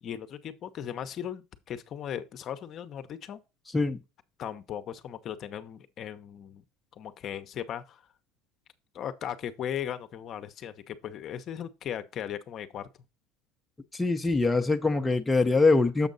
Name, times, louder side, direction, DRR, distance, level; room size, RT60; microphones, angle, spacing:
voice 1, 0.0-3.4 4.4-6.6 6.9-8.0 8.9-12.9 14.2-14.4, left 9 dB, 45° left, 0.8 m, -37 dB
voice 2, 13.9-16.1, left 3 dB, 10° left, 0.6 m, -23 dB
7.2 x 5.1 x 3.9 m
supercardioid pair, 110°, 0 cm